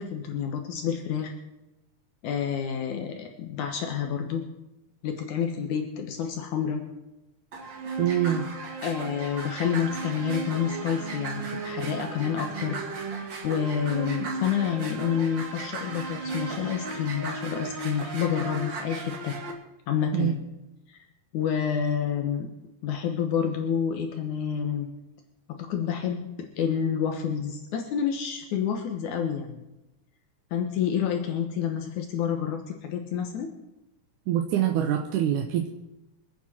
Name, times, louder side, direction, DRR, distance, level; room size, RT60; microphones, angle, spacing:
voice 1, 0.0-1.3 2.2-4.4 5.0-6.8 8.8-12.8 13.4-19.4 19.9-20.3 20.9-21.0 21.3-22.5 22.8-24.9 25.6-26.3 26.6-29.6 30.5-33.5, left 8 dB, 75° left, 4 dB, 2.7 m, -28 dB
sound 1, 7.5-19.5, right 3 dB, 40° right, 2.3 m, -35 dB
voice 2, 8.0-8.5 20.1-20.3 34.3-35.7, right 10 dB, 80° right, 3 dB, 2.4 m, -25 dB
27.0 x 9.1 x 4.4 m, 0.96 s
omnidirectional pair, 3.5 m